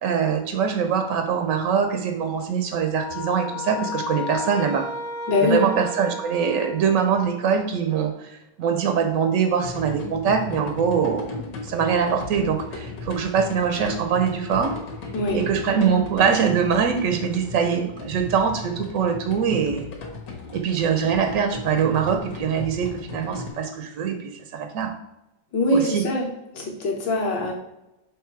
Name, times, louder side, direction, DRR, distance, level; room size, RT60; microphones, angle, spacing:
voice 1, 0.0-4.9 5.4-14.8 15.3-19.9 20.5-24.9 25.7-26.0, right 7 dB, 70° right, 6 dB, 0.8 m, -23 dB
sound 1, 2.9-7.4, left 3 dB, 40° left, 0.6 m, -34 dB
voice 2, 5.3-5.6 15.1-15.4 25.5-26.3 26.5-27.5, left 1 dB, 65° left, 0 dB, 1.9 m, -22 dB
sound 2, 9.6-23.5, left 3 dB, 85° left, 2.1 m, -36 dB
6.7 x 3.3 x 4.6 m, 0.92 s
omnidirectional pair, 2.1 m